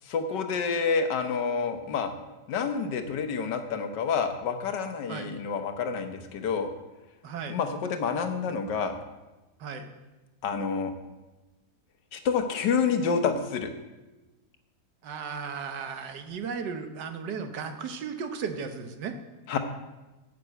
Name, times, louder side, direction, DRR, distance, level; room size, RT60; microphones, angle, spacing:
voice 1, 0.1-2.1 2.5-6.7 7.5-9.0 10.4-10.9 12.1-13.7 19.5-19.6, left 5 dB, 80° left, 7 dB, 1.6 m, -28 dB
voice 2, 7.2-7.6 9.6-9.9 15.0-19.1, right 6 dB, 80° right, 7 dB, 1.6 m, -35 dB
8.9 x 6.7 x 8.0 m, 1.1 s
omnidirectional pair, 1.8 m